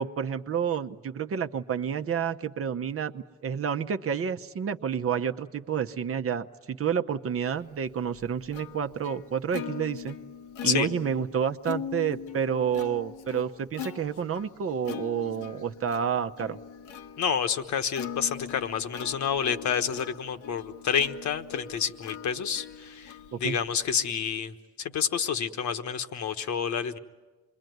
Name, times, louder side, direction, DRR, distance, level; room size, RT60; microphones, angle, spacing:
voice 1, 0.0-10.2 10.6-16.6 23.3-23.6, right 7 dB, 50° right, 7 dB, 0.9 m, -29 dB
Plucked string instrument, 7.6-24.4, left 8 dB, 85° left, 1.2 m, -41 dB
voice 2, 17.2-27.0, left 7 dB, 65° left, 7 dB, 1.3 m, -29 dB
27.0 x 22.0 x 9.4 m, 1.2 s
cardioid pair, 90°, 30 cm